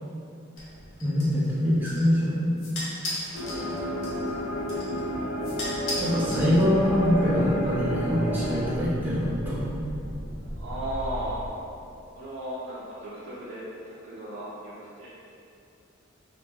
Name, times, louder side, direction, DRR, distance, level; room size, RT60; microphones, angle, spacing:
sound 1, 0.6-7.0, left 1 dB, 90° left, 0.7 m, -38 dB
voice 1, 1.0-2.5 3.4-3.6 6.0-9.8, equal, 10° right, -9 dB, 0.4 m, -24 dB
sound 2, 3.3-8.7, equal, 60° left, 0.3 m, -30 dB
voice 2, 3.4-4.5 10.6-11.5 12.1-15.1, right 1 dB, 80° right, -9 dB, 0.4 m, -37 dB
sound 3, 6.3-11.5, equal, 50° right, 0.9 m, -38 dB
3.1 x 2.1 x 2.2 m, 2.6 s
head